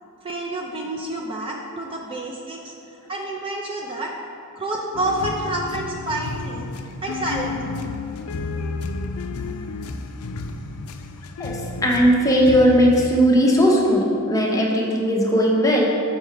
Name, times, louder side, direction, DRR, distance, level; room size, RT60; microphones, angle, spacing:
voice 1, 0.2-2.7 3.1-4.2 4.6-6.7 7.0-7.8, right 1 dB, 25° right, -1 dB, 0.4 m, -28 dB
sound 1, 4.9-13.1, left 3 dB, 75° left, 0.4 m, -31 dB
voice 2, 11.4-15.9, equal, 15° left, -2 dB, 0.8 m, -18 dB
6.9 x 4.4 x 4.7 m, 2.6 s
head